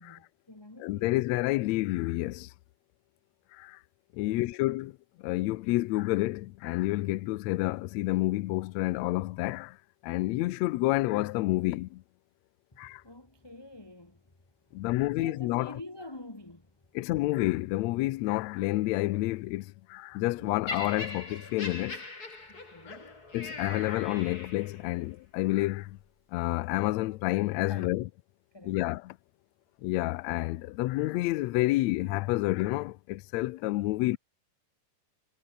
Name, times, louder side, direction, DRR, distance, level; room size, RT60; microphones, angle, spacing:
voice 1, 0.0-1.1 4.2-4.6 12.7-14.2 14.8-16.7 20.4-20.5 22.5-23.6 27.7-28.1 28.5-28.8, left 1 dB, 10° left, 1.8 m, -48 dB
voice 2, 0.8-2.5 3.5-3.8 4.1-4.9 5.2-9.8 10.0-12.0 12.8-13.0 14.7-15.7 16.9-22.0 22.9-23.0 23.3-26.0 26.3-28.1 28.6-29.1 29.8-34.2, left 18 dB, 80° left, 1.7 m, -29 dB
Laughter, 20.7-24.9 25.7-25.9, left 3 dB, 25° left, 5.0 m, -41 dB
omnidirectional pair, 3.7 m